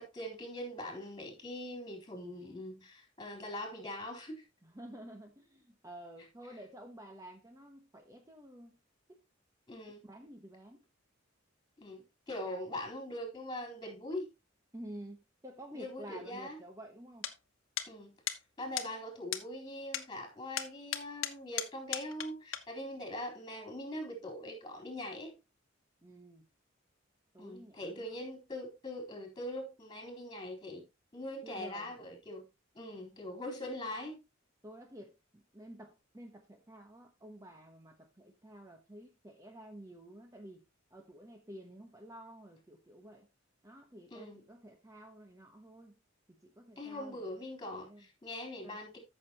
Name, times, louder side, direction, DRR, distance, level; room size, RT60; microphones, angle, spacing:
voice 1, 0.0-4.4 9.7-10.0 11.8-14.3 15.7-16.6 17.9-18.2 18.6-25.4 27.4-30.8 31.1-32.5 32.7-34.2 44.1-44.4 46.8-49.0, left 1 dB, 20° left, 3.9 m, -42 dB
voice 2, 4.6-8.8 9.1-9.2 10.0-10.8 14.7-17.3 26.0-26.4 27.3-28.0 31.4-32.2 34.6-40.6 40.9-43.3 43.6-46.0 46.4-47.2 47.7-48.0 48.6-48.8, right 1 dB, 15° right, 1.1 m, -51 dB
sound 1, 17.2-17.3 17.8-17.9 18.3-18.4 18.8-18.9 19.3-19.4 19.9-20.1 20.6-22.3 22.5-22.6, left 11 dB, 85° left, 1.1 m, -36 dB
13.5 x 6.6 x 2.9 m
head